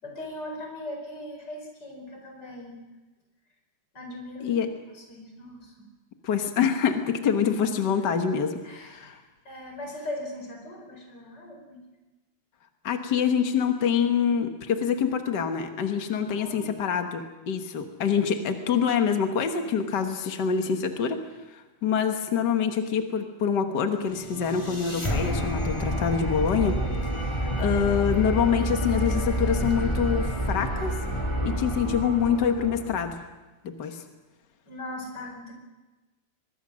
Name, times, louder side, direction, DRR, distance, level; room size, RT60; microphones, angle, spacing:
voice 1, 0.0-2.8 3.9-4.6 5.1-5.7 8.0-8.1 8.6-9.2 9.5-11.8 16.4-16.9 33.8-33.9 34.7-35.5, left 1 dB, 30° left, 2 dB, 5.2 m, -39 dB
voice 2, 6.2-9.2 12.8-21.2 21.5-26.8 27.1-30.9 31.4-33.2 33.6-34.0, left 7 dB, 80° left, 6 dB, 0.9 m, -26 dB
sound 1, 24.0-33.2, equal, 10° left, 1.3 m, -29 dB
23.5 x 21.5 x 6.3 m, 1.1 s
omnidirectional pair, 4.1 m